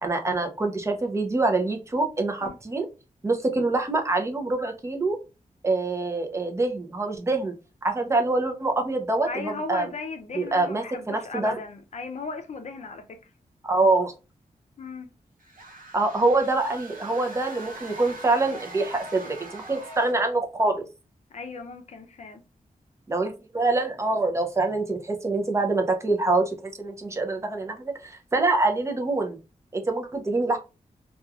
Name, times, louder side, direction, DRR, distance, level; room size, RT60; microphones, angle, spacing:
voice 1, 0.0-2.9 3.2-5.2 5.6-7.5 7.8-9.9 10.3-11.6 13.6-14.1 15.9-20.8 23.1-29.4 29.7-30.6, right 2 dB, 20° right, 0.5 m, -25 dB
voice 2, 9.3-13.2 14.8-15.1 21.3-22.4, left 4 dB, 55° left, 0.5 m, -36 dB
sound 1, 15.4-20.3, right 2 dB, 80° right, 0.6 m, -42 dB
2.9 x 2.3 x 2.3 m
wide cardioid pair, 150°, 14 cm